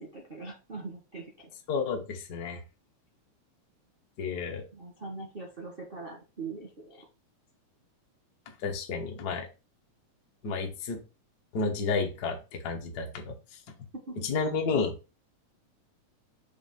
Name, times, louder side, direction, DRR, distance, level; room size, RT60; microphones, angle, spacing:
voice 1, 0.0-1.5 4.7-7.0 14.1-14.3, right 3 dB, 50° right, -1 dB, 0.6 m, -42 dB
voice 2, 1.7-2.6 4.2-4.6 8.6-9.5 10.4-11.0 11.5-13.3 14.2-14.9, left 4 dB, 75° left, 1 dB, 0.9 m, -31 dB
6.9 x 2.7 x 5.3 m, 0.31 s
omnidirectional pair, 3.5 m